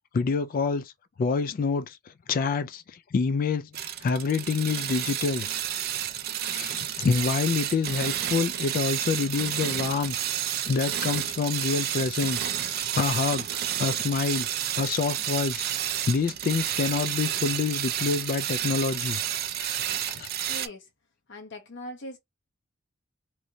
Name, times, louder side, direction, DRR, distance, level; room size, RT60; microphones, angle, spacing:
voice 1, 0.1-0.9 1.2-2.0 2.3-5.5 6.5-10.2 10.6-14.5 14.8-19.2 19.6-20.3, left 5 dB, 45° left, 0.3 m, -27 dB
sound 1, 3.7-20.7, right 11 dB, 50° right, 0.4 m, -30 dB
voice 2, 20.4-20.9 21.3-22.2, left 1 dB, 65° left, 0.8 m, -40 dB
3.1 x 2.6 x 2.7 m
head